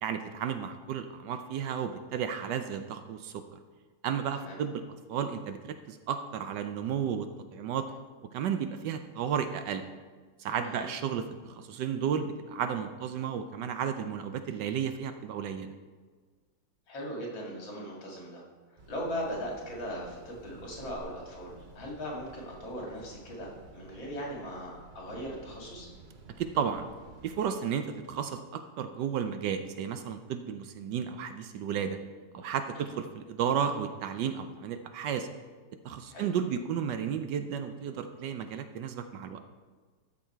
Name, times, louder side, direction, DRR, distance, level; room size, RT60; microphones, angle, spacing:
voice 1, 0.0-3.4 4.0-4.8 5.1-7.9 8.3-9.9 10.4-15.7 26.4-26.9 27.2-32.0 32.3-35.3 35.8-39.4, right 8 dB, 70° right, 8 dB, 1.2 m, -33 dB
voice 2, 16.9-18.4 18.7-25.9 32.7-33.0 36.1-36.3, equal, 75° left, -2 dB, 3.1 m, -39 dB
sound 1, 18.8-27.4, right 3 dB, 55° right, 0.5 m, -53 dB
13.0 x 6.4 x 4.5 m, 1.4 s
omnidirectional pair, 2.1 m